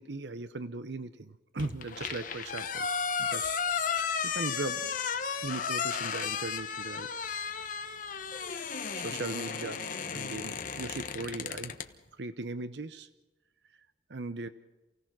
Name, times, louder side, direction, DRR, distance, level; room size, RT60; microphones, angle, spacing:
voice 1, 0.0-2.9 3.2-3.6 4.2-4.9 5.4-7.1 8.9-11.7 12.2-13.1 14.1-14.5, right 3 dB, 85° right, 11 dB, 0.9 m, -38 dB
sound 1, 1.6-11.9, left 6 dB, 50° left, 1.2 m, -34 dB
28.5 x 17.0 x 6.0 m, 1.1 s
head